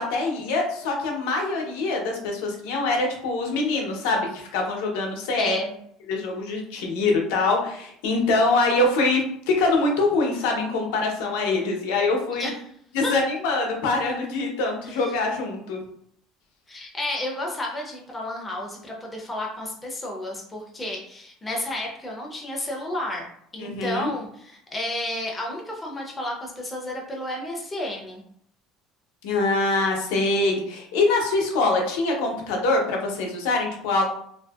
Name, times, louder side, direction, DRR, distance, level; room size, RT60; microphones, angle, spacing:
voice 1, 0.0-5.6 6.1-12.5 12.9-15.8 23.6-24.1 29.2-34.0, left 3 dB, 85° left, 1 dB, 0.7 m, -24 dB
voice 2, 5.4-5.8 12.3-12.5 13.0-13.1 14.9-15.1 16.7-23.3 23.5-28.2, left 1 dB, 10° left, -1 dB, 0.4 m, -32 dB
2.6 x 2.6 x 2.3 m, 0.68 s
cardioid pair, 180°, 0 cm